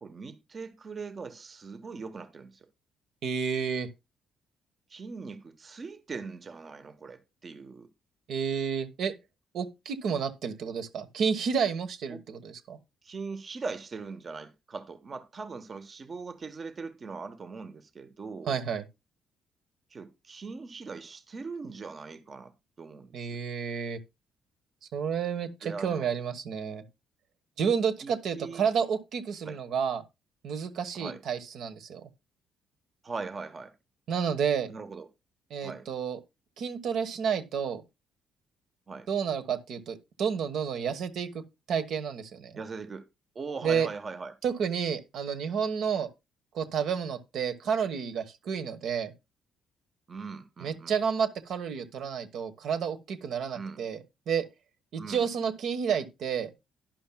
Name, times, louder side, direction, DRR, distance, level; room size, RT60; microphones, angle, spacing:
voice 1, 0.0-2.7 4.9-7.9 12.1-12.2 13.0-18.6 19.9-22.5 22.8-23.4 25.6-26.1 28.0-28.6 29.4-29.6 30.9-31.2 33.0-33.7 34.7-35.1 35.6-35.9 38.9-39.1 42.5-43.1 43.3-44.3 50.1-51.0 53.5-53.8 55.0-55.3, right 4 dB, 40° right, 1.0 m, -40 dB
voice 2, 3.2-3.9 8.3-9.1 9.5-12.8 18.5-18.8 23.1-24.0 24.9-26.8 27.6-30.0 30.4-32.0 34.1-34.7 35.5-36.2 36.6-37.8 39.1-41.4 41.7-42.6 43.6-43.9 44.4-46.1 46.5-49.1 50.6-54.0 54.3-54.4 54.9-56.5, right 7 dB, 70° right, 1.2 m, -30 dB
11.5 x 10.5 x 2.3 m
cardioid pair, 80°, 0 cm